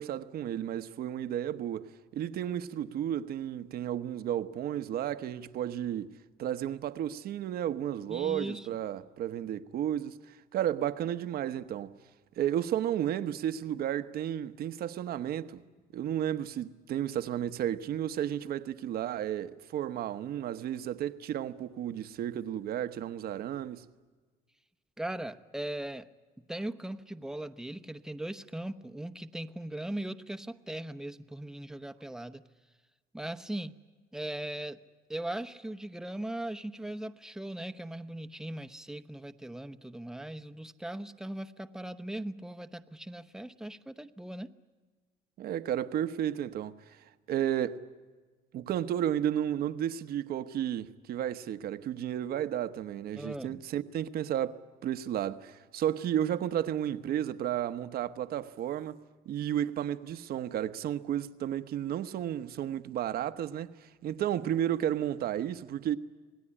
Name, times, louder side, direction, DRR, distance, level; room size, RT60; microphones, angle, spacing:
voice 1, 0.0-6.1 6.4-11.9 12.4-15.6 15.9-23.8 45.4-47.8 48.5-66.0, right 10 dB, 65° right, 1.1 m, -33 dB
voice 2, 8.1-8.7 25.0-26.1 26.5-32.4 33.1-33.8 34.1-34.8 35.1-44.5 53.1-53.6, right 1 dB, 5° right, 0.9 m, -39 dB
27.0 x 18.5 x 10.0 m
cardioid pair, 110°, 17 cm